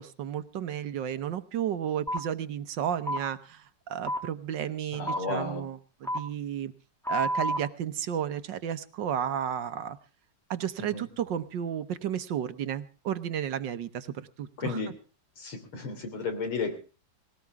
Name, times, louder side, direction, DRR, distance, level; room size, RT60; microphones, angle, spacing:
voice 1, 0.0-6.7 7.1-10.0 10.5-14.8, right 9 dB, 65° right, 13 dB, 1.5 m, -33 dB
sound 1, 2.1-2.2 3.1-3.2 4.1-4.2 5.1-5.2 6.0-6.2 7.0-7.6, equal, ahead, 0.8 m, -29 dB
voice 2, 4.9-5.7 10.8-11.1 14.6-14.9 15.4-16.7, left 4 dB, 90° left, 6 dB, 4.0 m, -33 dB
19.0 x 18.0 x 3.5 m, 0.34 s
omnidirectional pair, 2.3 m